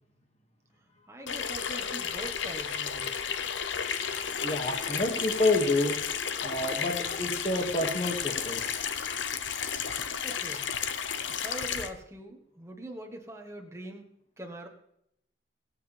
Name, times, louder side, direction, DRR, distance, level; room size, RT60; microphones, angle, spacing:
voice 1, 1.1-3.1 10.2-10.6 11.3-14.1 14.4-14.7, right 1 dB, 15° right, 3 dB, 1.4 m, -43 dB
Water tap faucet / Sink (filling or washing), 1.3-11.9, left 7 dB, 75° left, 0.8 m, -33 dB
voice 2, 4.4-6.0 6.4-8.8, left 2 dB, 35° left, 3 dB, 2.0 m, -28 dB
23.0 x 8.3 x 3.4 m, 0.78 s
head